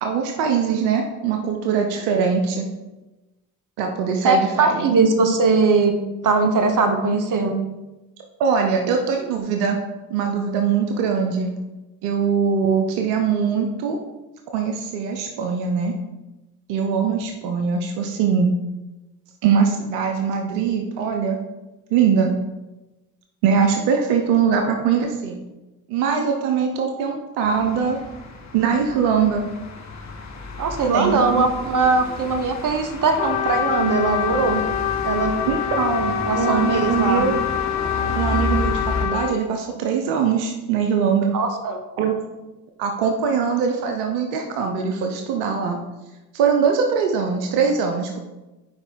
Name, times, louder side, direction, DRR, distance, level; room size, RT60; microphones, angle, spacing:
voice 1, 0.0-2.7 3.8-4.9 8.4-9.8 10.1-11.5 12.0-14.0 14.5-15.9 16.7-18.5 19.4-21.4 21.9-22.3 23.4-25.4 25.9-28.0 28.5-29.4 30.9-31.5 35.4-37.4 38.1-41.3 42.0-42.2 42.8-45.8 46.3-48.2, right 6 dB, 80° right, 3 dB, 0.8 m, -22 dB
voice 2, 4.2-6.0 6.2-7.6 30.6-34.6 35.0-35.4 36.3-37.2 41.3-41.8, right 4 dB, 45° right, 5 dB, 1.2 m, -20 dB
sound 1, 27.4-39.0, left 2 dB, 40° left, 1.2 m, -32 dB
Trumpet, 33.2-39.4, left 9 dB, 70° left, 0.7 m, -25 dB
5.5 x 4.9 x 4.4 m, 1.0 s
hypercardioid pair, 55°, 44 cm